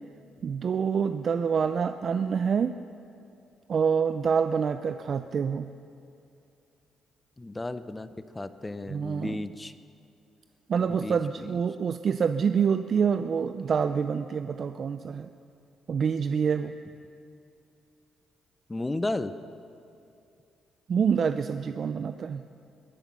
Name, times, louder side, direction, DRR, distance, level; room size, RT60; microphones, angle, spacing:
voice 1, 0.4-2.7 3.7-5.7 8.9-9.4 10.7-15.3 15.9-16.7 20.9-22.4, right 6 dB, 50° right, 10 dB, 0.5 m, -26 dB
voice 2, 7.4-8.1 8.3-9.7 10.9-11.6 18.7-19.3, left 2 dB, 15° left, 12 dB, 0.7 m, -33 dB
20.5 x 11.0 x 6.0 m, 2.6 s
cardioid pair, 90°, 0 cm